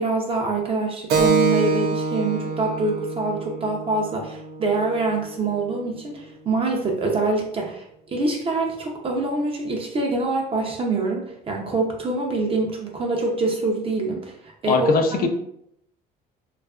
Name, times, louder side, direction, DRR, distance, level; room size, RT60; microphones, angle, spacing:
voice 1, 0.0-15.3, right 3 dB, 35° right, 0 dB, 0.5 m, -25 dB
Keyboard (musical), 1.1-6.2, right 3 dB, 90° right, 0.4 m, -26 dB
voice 2, 14.7-15.3, left 4 dB, 60° left, 6 dB, 0.4 m, -20 dB
2.6 x 2.3 x 2.3 m, 0.74 s
cardioid pair, 110°, 17 cm